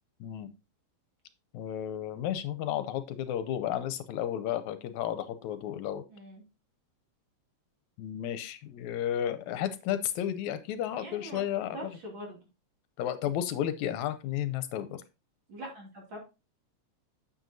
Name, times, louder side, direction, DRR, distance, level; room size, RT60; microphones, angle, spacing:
voice 1, 0.2-0.5 1.5-6.0 8.0-11.8 13.0-15.0, left 10 dB, 80° left, 12 dB, 1.9 m, -33 dB
voice 2, 6.1-6.4 11.0-11.4 11.7-12.4 15.5-16.2, right 1 dB, 40° right, 0 dB, 3.1 m, -43 dB
9.1 x 7.3 x 2.6 m, 0.28 s
omnidirectional pair, 3.4 m